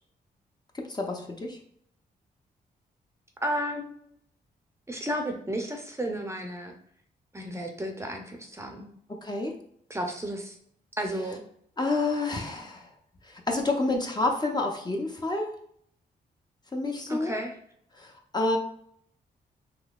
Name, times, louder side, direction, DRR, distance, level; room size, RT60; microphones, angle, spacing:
voice 1, 0.7-1.6 9.2-9.5 11.8-12.9 13.3-15.5 16.7-17.3 18.0-18.6, left 2 dB, 25° left, 2 dB, 0.6 m, -29 dB
voice 2, 3.4-3.9 4.9-6.7 7.3-8.9 9.9-10.5 11.0-11.4 17.1-17.6, equal, 15° right, 2 dB, 0.6 m, -32 dB
3.7 x 2.7 x 2.4 m, 0.65 s
cardioid pair, 65°, 17 cm